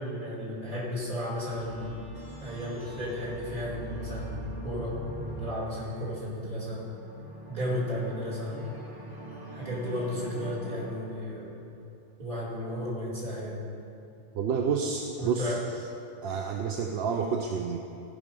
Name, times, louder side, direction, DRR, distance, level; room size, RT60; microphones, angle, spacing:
voice 1, 0.0-2.0 2.4-6.8 7.5-8.6 9.5-11.6 12.2-13.6 15.2-15.6, equal, 45° right, -7 dB, 2.6 m, -34 dB
sound 1, 1.5-11.5, right 1 dB, 20° right, 1.3 m, -43 dB
voice 2, 14.3-15.5 16.2-17.8, right 6 dB, 65° right, 3 dB, 0.8 m, -29 dB
14.5 x 5.2 x 5.3 m, 2.6 s
omnidirectional pair, 1.3 m